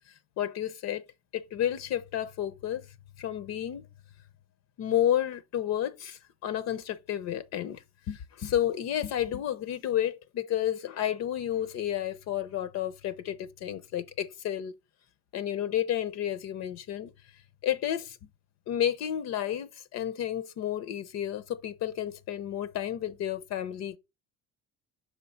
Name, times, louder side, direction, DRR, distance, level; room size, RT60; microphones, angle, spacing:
voice 1, 0.1-1.0 1.3-2.9 3.2-3.9 4.8-14.7 15.3-17.1 17.6-18.2 18.7-24.0, left 11 dB, 60° left, 0.7 m, -31 dB
6.1 x 4.5 x 3.9 m
cardioid pair, 145°, 30 cm